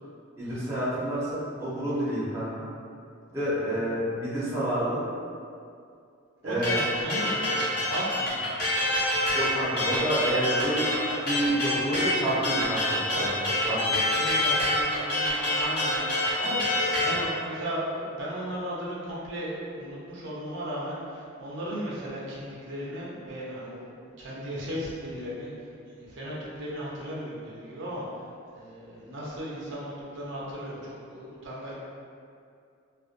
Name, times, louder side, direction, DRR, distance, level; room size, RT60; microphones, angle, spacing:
voice 1, 0.4-2.6 3.3-5.0 6.4-6.8 9.3-11.0 11.2-13.9, right 1 dB, 15° right, -10 dB, 0.6 m, -29 dB
voice 2, 6.4-8.4 13.1-13.3 13.5-23.9 24.2-25.7 26.0-28.1 28.5-31.7, equal, 65° right, -6 dB, 0.5 m, -36 dB
sound 1, 6.6-17.2, left 1 dB, 50° left, 0.9 m, -26 dB
2.5 x 2.2 x 2.4 m, 2.4 s
head